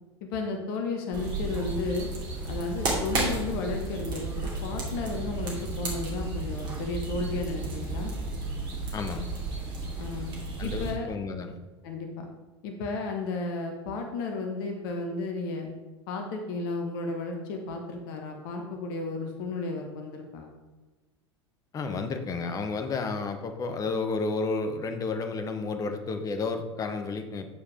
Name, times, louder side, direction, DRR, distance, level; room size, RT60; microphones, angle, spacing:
voice 1, 0.2-2.1 2.4-8.1 10.0-10.3 10.6-11.1 11.8-12.3 12.6-15.7 16.1-20.5, left 3 dB, 50° left, 3 dB, 1.3 m, -33 dB
sound 1, 1.1-10.9, right 2 dB, 30° right, 2.5 m, -33 dB
voice 2, 8.9-9.3 10.6-11.6 21.7-27.4, left 4 dB, 25° left, 7 dB, 0.9 m, -31 dB
9.1 x 4.8 x 4.9 m, 1.2 s
figure-of-eight pair, 85°, 15 cm